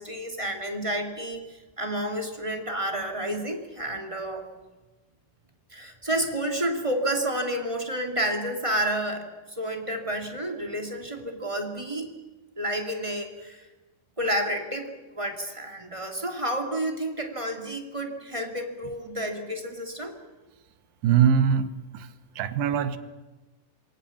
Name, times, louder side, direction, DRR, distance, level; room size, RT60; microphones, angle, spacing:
voice 1, 0.0-4.5 5.7-9.3 9.6-12.1 12.6-13.7 14.2-20.2, right 1 dB, 10° right, 3 dB, 1.8 m, -30 dB
voice 2, 21.0-22.1 22.4-23.0, right 8 dB, 65° right, 11 dB, 2.7 m, -22 dB
27.5 x 23.5 x 7.3 m, 1.2 s
omnidirectional pair, 4.8 m